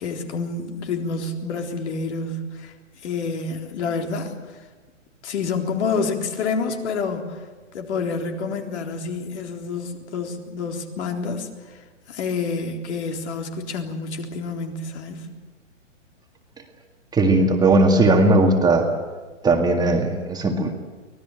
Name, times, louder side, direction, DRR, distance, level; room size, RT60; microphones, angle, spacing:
voice 1, 0.0-2.7 3.0-4.6 5.2-7.4 7.7-11.8 12.1-15.3, left 4 dB, 60° left, 3 dB, 3.9 m, -28 dB
voice 2, 17.1-18.9 19.4-20.7, right 2 dB, 10° right, 3 dB, 1.9 m, -18 dB
24.5 x 18.0 x 8.9 m, 1.3 s
hypercardioid pair, 135°, 38 cm